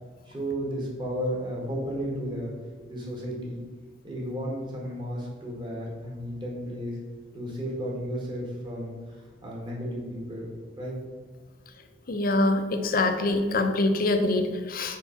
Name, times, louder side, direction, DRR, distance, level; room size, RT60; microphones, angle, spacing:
voice 1, 0.3-2.5 2.9-3.6 4.0-7.0 7.3-10.5 10.8-11.0, equal, 25° right, -2 dB, 1.5 m, -33 dB
voice 2, 12.1-15.0, left 2 dB, 50° left, 6 dB, 0.6 m, -24 dB
4.6 x 4.6 x 5.6 m, 1.4 s
head